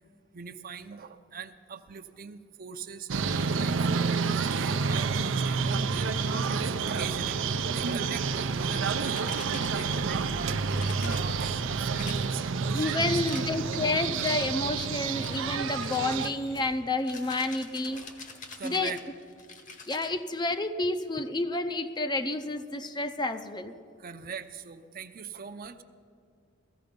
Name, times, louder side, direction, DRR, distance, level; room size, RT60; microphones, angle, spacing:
voice 1, 0.3-3.8 4.1-7.4 7.7-13.2 18.6-19.0 24.0-25.8, right 6 dB, 50° right, 9 dB, 0.6 m, -41 dB
sound 1, 3.1-16.3, right 5 dB, 90° right, 0.6 m, -29 dB
sound 2, 9.1-10.2 10.8-11.5 12.0-12.6 13.2-13.8 14.2-14.6 15.2-15.5 15.8-20.1, left 4 dB, 45° left, 1.1 m, -45 dB
voice 2, 12.7-18.0 18.6-18.9 19.9-23.7, left 2 dB, 25° left, 9 dB, 0.5 m, -30 dB
Fireworks, 12.8-18.9, left 2 dB, 75° left, 5.3 m, -52 dB
17.5 x 14.5 x 5.2 m, 2.2 s
head